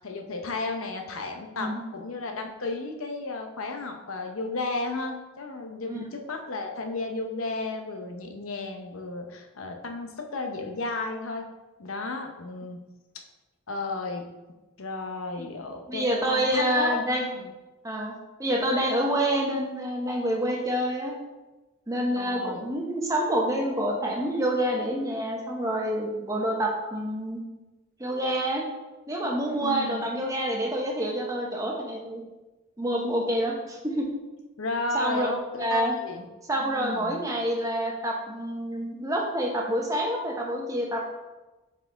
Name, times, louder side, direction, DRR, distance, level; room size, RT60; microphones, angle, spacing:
voice 1, 0.0-11.4 11.8-12.8 13.7-14.2 14.8-17.5 22.1-22.6 29.6-30.1 34.6-36.3 36.6-37.2, left 3 dB, 85° left, 4 dB, 0.9 m, -33 dB
voice 2, 15.9-17.2 17.8-21.1 21.9-27.4 28.0-28.7 29.1-32.2 32.8-34.1 34.9-35.3 35.6-36.0 36.5-41.1, right 1 dB, 15° right, -1 dB, 0.9 m, -27 dB
7.7 x 4.6 x 3.5 m, 1.1 s
head